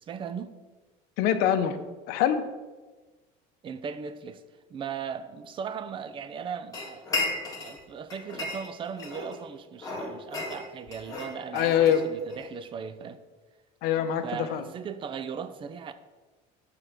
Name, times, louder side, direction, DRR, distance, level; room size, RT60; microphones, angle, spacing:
voice 1, 0.1-0.6 3.6-4.4 4.7-7.2 7.6-13.2 14.2-15.9, right 7 dB, 30° right, 0.5 m, -38 dB
voice 2, 1.2-1.8 2.1-2.4 11.5-12.0 13.8-14.6, left 9 dB, 70° left, 0.7 m, -24 dB
sound 1, 6.7-7.8 8.1-9.4 9.8-12.5, left 3 dB, 20° left, 1.8 m, -34 dB
7.9 x 3.8 x 5.9 m
cardioid pair, 135°, 17 cm